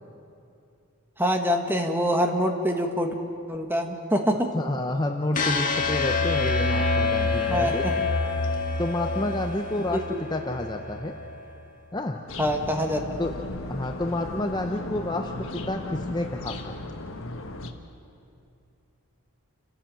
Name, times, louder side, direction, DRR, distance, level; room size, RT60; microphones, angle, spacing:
voice 1, 1.2-3.1 3.5-4.5 7.5-7.9 9.2-9.3 9.9-10.2 12.4-13.0, equal, 10° right, 4 dB, 1.5 m, -25 dB
voice 2, 4.5-7.8 8.8-10.0 10.3-11.1 11.9-12.2 13.2-13.4 13.7-16.8, left 1 dB, 20° left, 3 dB, 0.7 m, -29 dB
sound 1, 5.3-11.4, left 3 dB, 35° left, 1.7 m, -27 dB
sound 2, 12.3-17.7, left 2 dB, 60° left, 1.5 m, -36 dB
29.0 x 15.5 x 7.6 m, 2.6 s
head